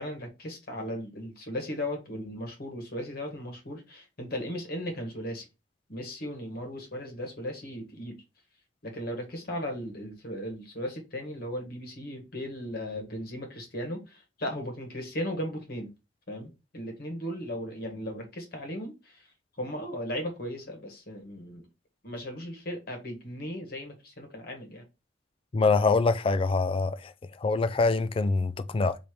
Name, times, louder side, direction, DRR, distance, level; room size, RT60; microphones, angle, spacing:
voice 1, 0.0-5.5 5.9-8.2 8.8-15.9 16.3-21.7 22.0-24.8, equal, 55° left, 1.4 m, -37 dB
voice 2, 25.5-27.1 27.4-29.0, left 3 dB, 30° left, 0.3 m, -24 dB
3.3 x 2.8 x 4.4 m
head